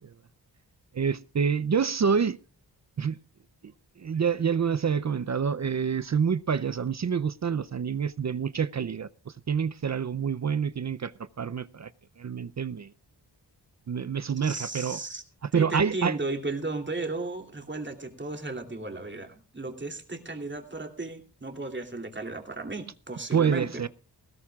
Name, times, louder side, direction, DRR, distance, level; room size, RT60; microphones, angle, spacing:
voice 1, 0.9-2.4 3.0-3.2 4.0-11.1 11.4-11.9 12.2-12.9 13.9-15.0 15.4-16.1 23.3-23.9, right 6 dB, 45° right, 0.6 m, -27 dB
voice 2, 14.4-15.2 15.5-23.9, right 2 dB, 25° right, 2.9 m, -35 dB
19.5 x 16.5 x 2.4 m
wide cardioid pair, 75°, 40 cm